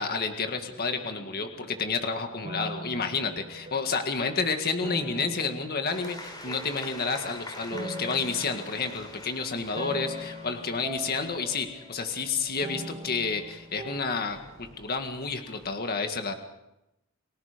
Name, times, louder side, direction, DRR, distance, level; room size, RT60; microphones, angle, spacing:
voice 1, 0.0-16.3, left 4 dB, 45° left, 5 dB, 1.9 m, -30 dB
sound 1, 0.7-2.1 2.4-4.2 4.8-14.6, equal, 30° right, 2.8 m, -42 dB
sound 2, 5.9-15.7, left 2 dB, 20° left, 3.8 m, -46 dB
30.0 x 19.0 x 5.2 m, 0.87 s
head